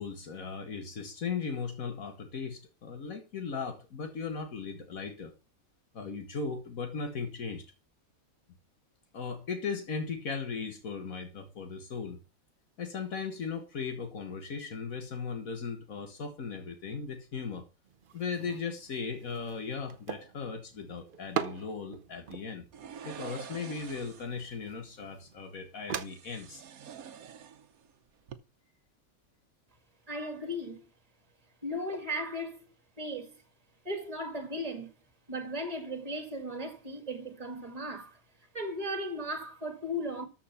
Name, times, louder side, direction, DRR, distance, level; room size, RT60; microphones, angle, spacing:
voice 1, 0.0-5.3 5.9-7.7 9.1-12.2 12.8-17.7 18.1-22.6 23.0-26.6, left 5 dB, 75° left, 1.8 m, -37 dB
sound 1, 17.8-26.1, right 8 dB, 50° right, 0.7 m, -42 dB
sound 2, 22.7-24.4 26.0-27.9 28.2-28.4, right 8 dB, 80° right, 1.4 m, -46 dB
voice 2, 30.1-30.9 31.6-32.7 33.0-33.3 33.9-34.9 35.3-38.2 38.5-40.3, equal, 25° right, 2.1 m, -36 dB
13.5 x 4.6 x 5.8 m
omnidirectional pair, 1.5 m